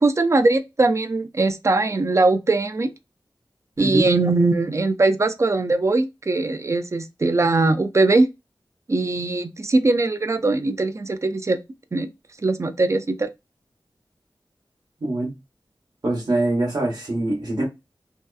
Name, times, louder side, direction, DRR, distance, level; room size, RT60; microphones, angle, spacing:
voice 1, 0.0-2.9 3.8-8.3 8.9-11.6 11.9-12.1 12.4-13.3, right 2 dB, 35° right, 0.3 m, -20 dB
voice 2, 15.0-15.4 16.0-17.6, right 2 dB, 50° right, 0.9 m, -23 dB
2.7 x 2.3 x 2.3 m
wide cardioid pair, 90°, 9 cm